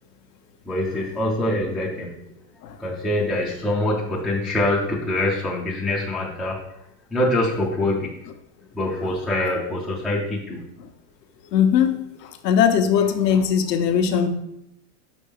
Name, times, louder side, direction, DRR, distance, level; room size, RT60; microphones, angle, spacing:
voice 1, 0.6-2.2 2.8-6.8 7.1-8.1 8.7-10.7, left 1 dB, ahead, -7 dB, 0.3 m, -24 dB
voice 2, 11.5-14.3, left 8 dB, 90° left, 6 dB, 1.0 m, -20 dB
5.6 x 5.2 x 5.0 m, 0.82 s
supercardioid pair, 145°, 47 cm